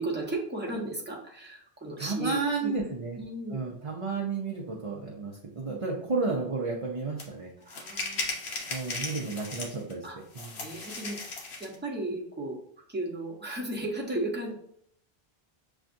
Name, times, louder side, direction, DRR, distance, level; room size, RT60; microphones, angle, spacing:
voice 1, 0.0-2.8 3.2-3.6 5.7-5.8 7.6-8.6 9.1-9.3 10.0-10.2 10.6-11.2 11.6-12.6 12.9-14.5, right 2 dB, 10° right, -3 dB, 0.9 m, -35 dB
voice 2, 2.0-3.2 3.5-7.5 8.7-10.0 10.3-10.6, right 4 dB, 35° right, -3 dB, 0.6 m, -32 dB
sound 1, 7.2-7.3 7.7-9.9 10.3-11.7, left 3 dB, 80° left, 1.1 m, -36 dB
6.9 x 2.4 x 2.6 m, 0.68 s
omnidirectional pair, 1.1 m